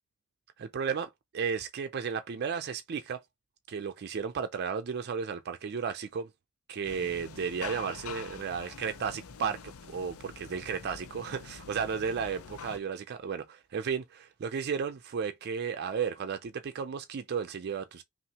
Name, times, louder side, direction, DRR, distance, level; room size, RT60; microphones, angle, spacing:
voice 1, 0.6-3.2 3.7-6.3 6.7-9.6 9.9-18.0, right 6 dB, 50° right, 0.4 m, -34 dB
sound 1, 6.8-12.8, left 6 dB, 85° left, 0.6 m, -46 dB
5.6 x 2.5 x 2.8 m
head